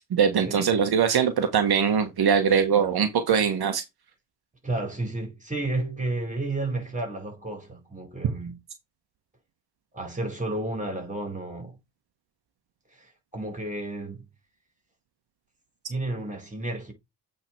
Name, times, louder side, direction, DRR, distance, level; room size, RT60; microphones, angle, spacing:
voice 1, 0.1-3.8, right 7 dB, 60° right, 1.3 m, -22 dB
voice 2, 4.6-8.6 9.9-11.8 12.9-14.3 15.9-16.9, right 2 dB, 15° right, 4.4 m, -32 dB
8.4 x 3.8 x 4.5 m
supercardioid pair, 60°, 43 cm